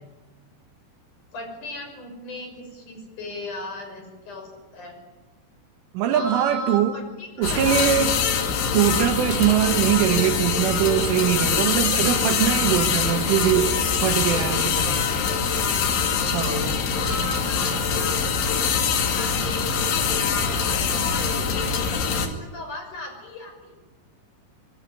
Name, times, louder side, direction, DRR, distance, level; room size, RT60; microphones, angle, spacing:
voice 1, 1.3-5.0 6.1-7.9 14.8-15.6 16.9-23.7, left 1 dB, 40° left, 7.1 m, -37 dB
voice 2, 5.9-6.9 7.4-8.1 8.7-15.1 16.3-16.7, right 11 dB, 80° right, 4.3 m, -22 dB
sound 1, 7.4-22.3, left 6 dB, 75° left, 4.9 m, -23 dB
25.5 x 22.0 x 9.8 m
omnidirectional pair, 5.6 m